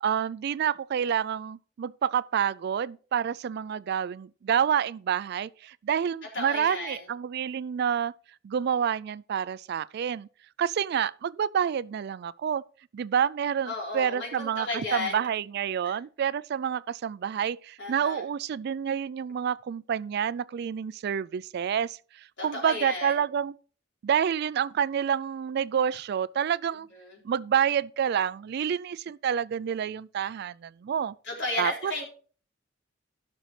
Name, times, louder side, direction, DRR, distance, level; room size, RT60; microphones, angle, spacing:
voice 1, 0.0-8.1 8.4-10.3 10.6-12.6 12.9-23.5 24.0-26.9 27.2-31.1 31.6-31.9, right 8 dB, 55° right, 0.3 m, -28 dB
voice 2, 6.3-7.0 13.7-15.2 15.8-16.0 17.8-18.2 22.4-23.1 27.0-27.2 31.2-32.0, left 2 dB, 65° left, 4.1 m, -33 dB
15.5 x 6.2 x 3.2 m
head